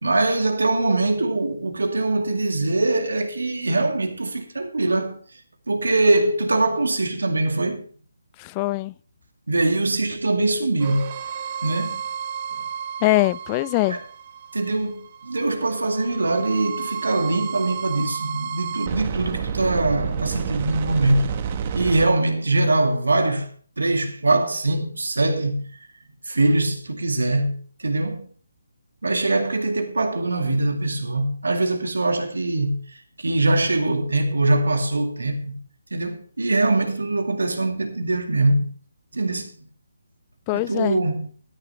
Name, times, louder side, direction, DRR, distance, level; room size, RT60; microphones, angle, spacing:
voice 1, 0.0-5.2 5.7-7.8 9.5-11.1 11.6-12.0 13.9-14.0 14.5-21.3 21.7-23.5 23.8-25.6 26.3-28.3 29.0-32.8 33.2-35.6 35.9-38.7 39.1-39.5 40.5-41.3, right 2 dB, 80° right, 2.2 m, -22 dB
voice 2, 8.4-8.9 13.0-14.0 40.5-41.0, left 19 dB, 20° left, 0.4 m, -22 dB
sound 1, 10.8-22.1, right 7 dB, 35° right, 1.1 m, -31 dB
12.5 x 10.5 x 3.3 m
figure-of-eight pair, 150°, 0 cm